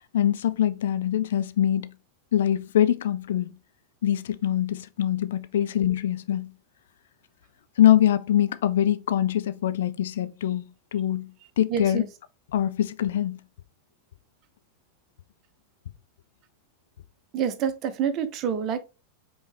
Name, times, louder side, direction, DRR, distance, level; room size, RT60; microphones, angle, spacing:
voice 1, 0.1-1.9 2.3-3.5 4.0-6.5 7.8-10.7 10.9-11.3 11.6-12.0 12.5-13.4, left 11 dB, 60° left, 0.4 m, -23 dB
voice 2, 11.7-12.1 17.3-18.8, right 8 dB, 35° right, 0.7 m, -27 dB
5.3 x 3.1 x 3.3 m
figure-of-eight pair, 90°, 0 cm